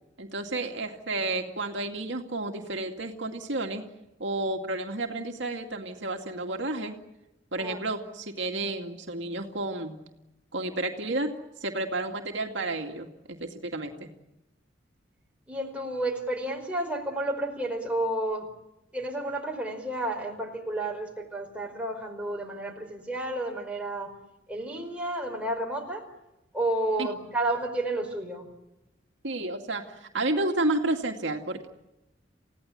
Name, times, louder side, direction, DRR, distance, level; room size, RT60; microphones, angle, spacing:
voice 1, 0.2-3.8 4.2-6.9 7.5-10.0 10.5-11.3 11.6-14.1 27.0-27.1 29.2-31.7, right 2 dB, 70° right, 3 dB, 2.3 m, -31 dB
voice 2, 15.5-18.5 18.9-24.1 24.5-26.0 26.5-28.5, right 1 dB, 5° right, 1 dB, 4.7 m, -31 dB
29.5 x 17.0 x 10.0 m, 0.95 s
head